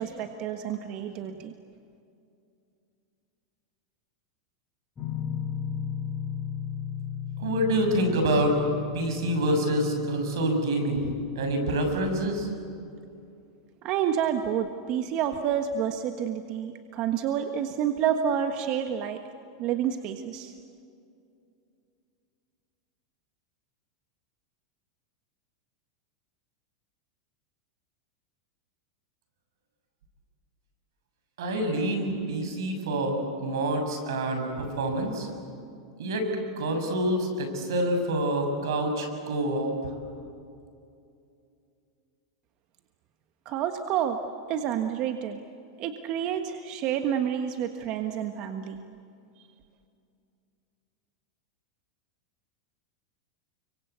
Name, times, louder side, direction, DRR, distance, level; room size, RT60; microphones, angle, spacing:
voice 1, 0.0-1.5 13.8-19.2 19.6-20.5 43.4-44.2 44.5-45.4 45.8-48.8, right 9 dB, 45° right, 6 dB, 1.5 m, -29 dB
sound 1, 5.0-10.6, left 8 dB, 20° left, 4.0 m, -35 dB
voice 2, 7.4-8.5 8.9-12.5 31.4-35.3 36.0-36.3 36.6-39.7, right 1 dB, 85° right, 5 dB, 6.9 m, -27 dB
30.0 x 24.5 x 8.3 m, 2.5 s
supercardioid pair, 135°, 2 cm